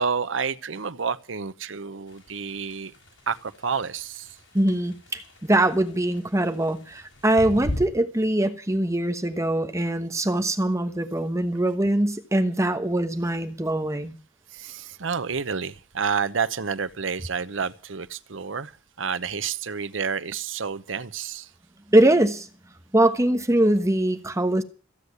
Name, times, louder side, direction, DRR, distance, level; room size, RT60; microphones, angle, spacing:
voice 1, 0.0-2.9 3.3-4.4 14.5-21.5, right 6 dB, 85° right, 0.9 m, -29 dB
sound 1, 2.1-7.9, left 1 dB, 80° left, 6.7 m, -38 dB
voice 2, 4.5-14.1 21.9-22.5 22.9-24.6, right 1 dB, 15° right, 1.2 m, -22 dB
15.0 x 8.3 x 9.4 m
head